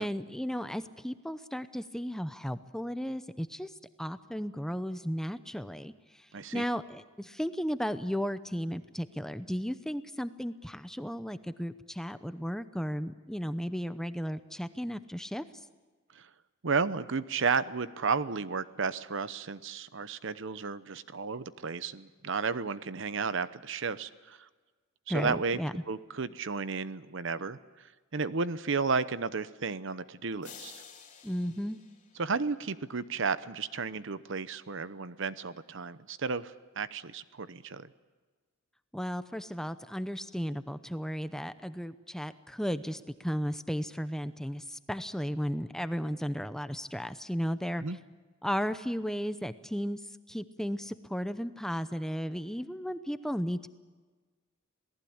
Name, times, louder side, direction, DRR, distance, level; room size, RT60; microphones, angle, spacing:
voice 1, 0.0-3.7 4.0-15.4 25.1-25.8 31.2-31.8 38.9-48.0 48.4-50.0 50.3-53.7, equal, 5° left, 11 dB, 0.7 m, -34 dB
voice 2, 6.3-6.6 16.1-16.3 16.6-24.4 25.1-25.6 25.9-27.6 28.1-30.8 32.2-37.9 47.8-48.0, right 4 dB, 65° right, 14 dB, 0.9 m, -33 dB
sound 1, 30.4-32.8, left 6 dB, 35° left, 3.5 m, -51 dB
27.5 x 18.5 x 8.7 m, 1.3 s
head